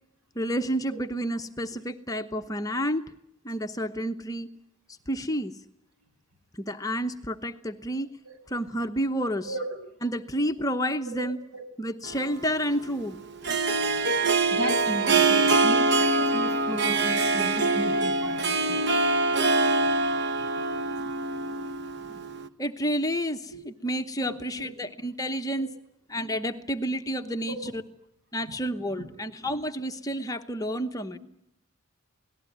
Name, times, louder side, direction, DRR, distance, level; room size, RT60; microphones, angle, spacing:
voice 1, 0.4-3.1 3.4-4.5 5.1-5.5 6.6-8.1 8.5-9.5 10.0-11.4 11.8-13.2 22.6-25.7 26.1-27.8 28.3-31.2, equal, 15° left, 7 dB, 0.9 m, -30 dB
Harp, 12.1-22.5, right 3 dB, 50° right, 1.0 m, -24 dB
voice 2, 14.5-18.8 21.0-21.1 22.1-22.2 23.5-23.6 24.2-24.7 25.6-25.7 27.5-27.6 29.0-29.2, equal, 85° right, 7 dB, 7.3 m, -35 dB
28.5 x 19.0 x 9.2 m, 0.79 s
head